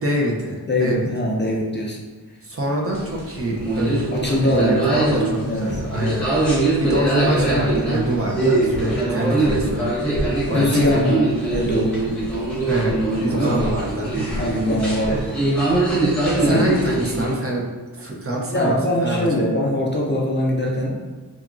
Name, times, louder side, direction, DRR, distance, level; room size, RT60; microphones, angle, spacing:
voice 1, 0.0-1.0 2.4-4.0 4.5-6.3 6.8-9.9 10.5-11.0 12.6-12.9 13.2-14.1 16.3-17.6 17.9-19.4, right 1 dB, 35° right, -2 dB, 0.4 m, -25 dB
voice 2, 0.7-2.0 4.1-4.8 5.4-5.8 7.8-8.0 10.5-11.9 13.3-13.6 14.4-15.3 16.4-16.6 18.5-21.0, left 1 dB, 30° left, -3 dB, 0.4 m, -22 dB
sound 1, 2.9-17.3, right 2 dB, 5° left, 0.8 m, -22 dB
2.8 x 2.4 x 2.4 m, 1.4 s
wide cardioid pair, 95°, 40 cm